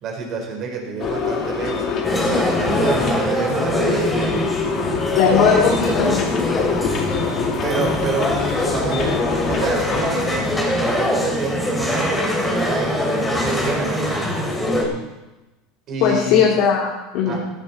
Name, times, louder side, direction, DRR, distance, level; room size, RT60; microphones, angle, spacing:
voice 1, 0.0-2.0 2.3-4.3 7.4-8.3 8.6-10.5 10.8-14.1 15.9-16.4 17.3-17.4, right 4 dB, 40° right, 1 dB, 4.3 m, -28 dB
sound 1, 1.0-10.5, left 5 dB, 40° left, 2.2 m, -26 dB
sound 2, 2.0-14.8, left 1 dB, 5° left, 3.0 m, -22 dB
voice 2, 5.2-6.2 16.0-17.4, left 6 dB, 60° left, -3 dB, 2.8 m, -18 dB
15.5 x 12.5 x 4.3 m, 1.1 s
supercardioid pair, 140°, 0 cm